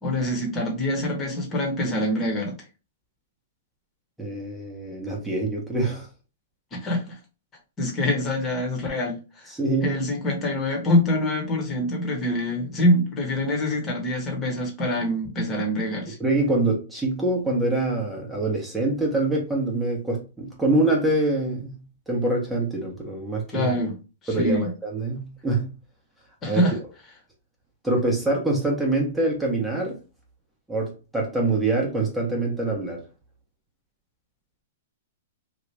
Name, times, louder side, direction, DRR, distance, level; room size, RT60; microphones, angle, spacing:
voice 1, 0.0-2.5 6.7-7.1 7.8-9.2 9.8-16.2 23.5-23.9 24.4-24.7 26.4-26.7, left 1 dB, 20° left, 1.2 m, -25 dB
voice 2, 4.2-6.1 9.5-10.0 16.2-23.7 24.3-25.7 26.4-26.6 27.8-30.0 30.7-33.0, right 2 dB, 5° right, 1.0 m, -25 dB
2.9 x 2.4 x 3.3 m
hypercardioid pair, 135°, 0 cm